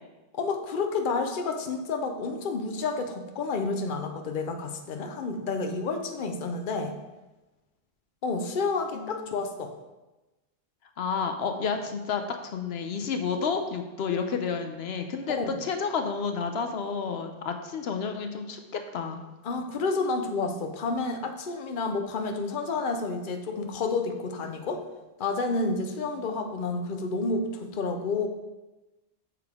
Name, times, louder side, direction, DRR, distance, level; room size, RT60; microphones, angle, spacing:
voice 1, 0.3-6.9 8.2-9.7 15.4-15.5 19.4-24.8 25.2-28.3, left 3 dB, 55° left, 5 dB, 0.9 m, -30 dB
voice 2, 11.0-19.2, left 5 dB, 80° left, 6 dB, 1.0 m, -30 dB
8.2 x 6.9 x 3.6 m, 1.1 s
omnidirectional pair, 1.0 m